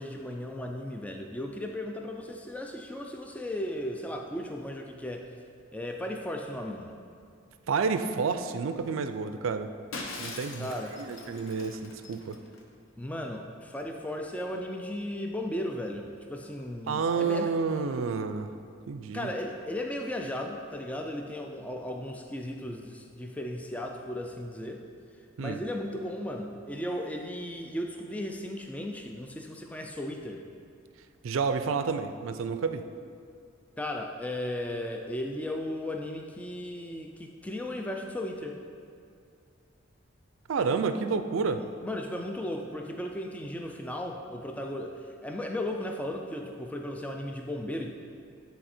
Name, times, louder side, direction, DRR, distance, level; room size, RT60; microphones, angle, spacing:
voice 1, 0.0-5.3 5.7-6.9 10.6-11.0 13.0-17.6 19.1-24.8 25.4-30.4 33.8-38.6 41.5-41.6 41.8-47.9, left 1 dB, 5° left, 2 dB, 0.3 m, -36 dB
voice 2, 7.7-9.7 10.2-10.7 11.0-12.4 16.9-18.5 18.9-19.3 25.4-25.6 31.2-32.8 40.5-41.6, right 5 dB, 75° right, 9 dB, 0.4 m, -29 dB
Shatter, 9.9-12.6, left 3 dB, 80° left, 0.7 m, -42 dB
9.2 x 4.1 x 4.3 m, 2.4 s
head